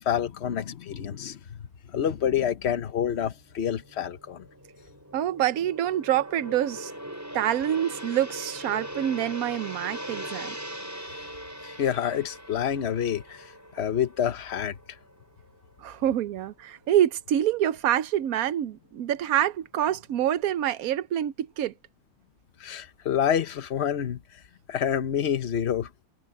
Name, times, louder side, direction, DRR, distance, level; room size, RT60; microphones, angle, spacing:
voice 1, 0.0-1.6 1.9-4.4 11.6-14.8 22.6-24.2 24.7-25.9, left 9 dB, 50° left, 1.2 m, -28 dB
Gong, 3.4-15.7 16.0-16.3, right 1 dB, 10° right, 6.9 m, -41 dB
voice 2, 5.1-6.9 7.3-10.6 15.8-21.7, right 11 dB, 75° right, 1.2 m, -26 dB
omnidirectional pair, 1.6 m